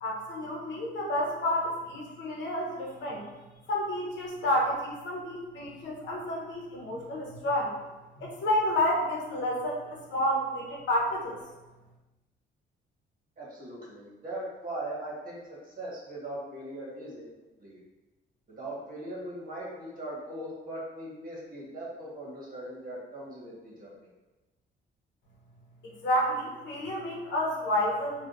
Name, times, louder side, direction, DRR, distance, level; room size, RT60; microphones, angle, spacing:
voice 1, 0.0-3.2 3.7-7.7 8.2-11.4 25.8-28.2, left 1 dB, 65° left, -3 dB, 0.8 m, -30 dB
voice 2, 13.4-17.3 17.6-17.8 18.5-23.9, right 1 dB, 45° right, -5 dB, 1.2 m, -40 dB
3.4 x 2.3 x 2.5 m, 1.1 s
cardioid pair, 90°, 20 cm